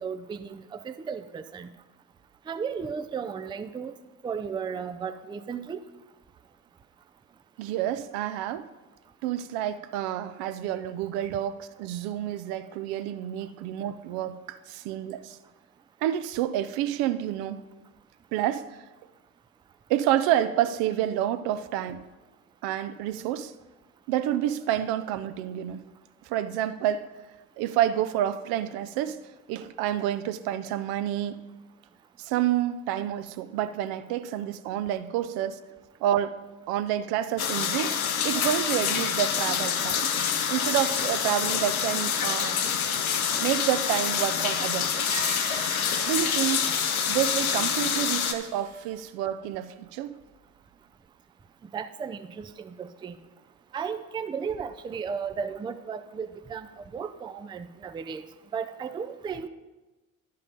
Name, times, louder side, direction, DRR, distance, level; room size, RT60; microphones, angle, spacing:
voice 1, 0.0-1.7 2.5-3.9 4.2-5.8 51.7-53.2 53.7-58.2 58.5-59.5, right 6 dB, 10° right, 0.4 m, -35 dB
voice 2, 7.6-8.7 9.2-15.4 16.0-17.7 18.3-18.7 19.9-22.0 22.6-23.5 24.1-25.8 26.3-27.1 27.6-29.2 29.5-31.4 32.2-35.6 36.0-36.4 36.7-37.9 38.2-40.1 40.5-42.7 43.4-45.3 46.1-46.6 47.1-50.2, right 11 dB, 60° right, 0.6 m, -29 dB
sound 1, 37.4-48.3, left 7 dB, 85° left, 0.7 m, -27 dB
Screech, 45.0-49.0, right 6 dB, 40° right, 1.5 m, -41 dB
11.5 x 5.7 x 5.2 m
hypercardioid pair, 60°, 41 cm